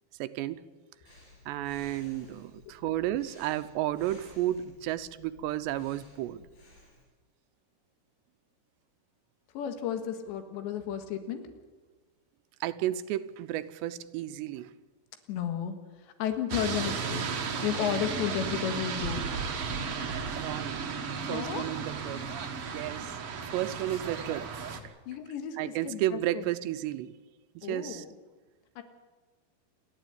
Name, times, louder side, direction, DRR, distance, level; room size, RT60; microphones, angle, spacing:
voice 1, 0.2-0.6 1.5-6.4 12.6-14.7 20.3-20.8 21.3-22.3 22.6-23.2 23.5-24.9 25.6-27.1 27.6-28.0, right 13 dB, 85° right, 12 dB, 2.9 m, -33 dB
Breathing, 1.1-7.0, left 2 dB, 50° left, 9.1 m, -55 dB
voice 2, 9.6-11.4 15.3-15.8 16.0-17.3 17.6-19.3 21.2-21.8 25.1-26.5 27.6-28.2 28.8-28.9, left 9 dB, 85° left, 8 dB, 3.9 m, -33 dB
sound 1, 16.5-24.8, right 5 dB, 60° right, 1.5 m, -34 dB
28.0 x 11.5 x 9.4 m, 1.3 s
omnidirectional pair, 5.0 m